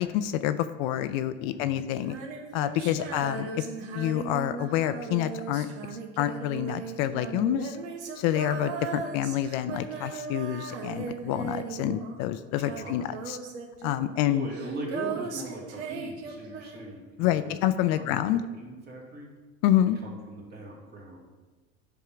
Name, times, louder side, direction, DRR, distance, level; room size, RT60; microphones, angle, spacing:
voice 1, 0.0-2.1 2.5-3.5 3.9-7.8 8.2-13.4 13.8-14.5 17.2-18.4 19.6-20.0, left 12 dB, 65° left, 12 dB, 0.5 m, -27 dB
voice 2, 1.4-1.9 2.9-3.1 12.7-13.0 14.2-17.5 17.9-19.3 19.9-21.2, right 1 dB, 30° right, -3 dB, 2.3 m, -40 dB
Female singing, 2.0-12.3 12.6-17.0, right 6 dB, 80° right, 1.2 m, -37 dB
9.3 x 3.7 x 5.7 m, 1.3 s
supercardioid pair, 120°, 33 cm